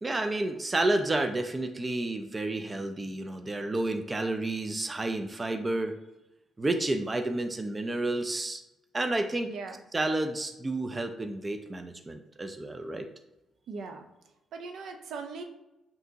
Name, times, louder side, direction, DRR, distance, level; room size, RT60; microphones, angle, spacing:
voice 1, 0.0-6.0 6.6-8.6 8.9-9.5 9.9-13.1, right 2 dB, 25° right, 6 dB, 0.4 m, -30 dB
voice 2, 9.4-9.8 13.7-14.1 14.5-15.4, right 4 dB, 70° right, 5 dB, 0.6 m, -39 dB
5.8 x 2.9 x 2.7 m, 0.95 s
cardioid pair, 90°, 0 cm